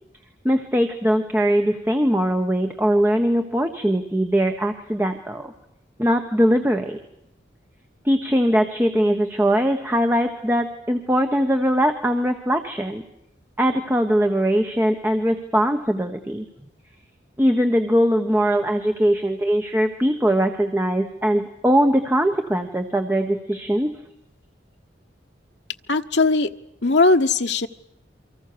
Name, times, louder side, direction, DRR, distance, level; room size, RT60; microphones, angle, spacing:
voice 1, 0.4-5.5 6.0-7.0 8.0-13.0 13.6-16.4 17.4-23.9, equal, 10° right, 5 dB, 1.4 m, -21 dB
voice 2, 25.9-26.5 26.8-27.7, left 3 dB, 65° left, 6 dB, 1.2 m, -18 dB
29.5 x 24.5 x 6.9 m, 0.78 s
head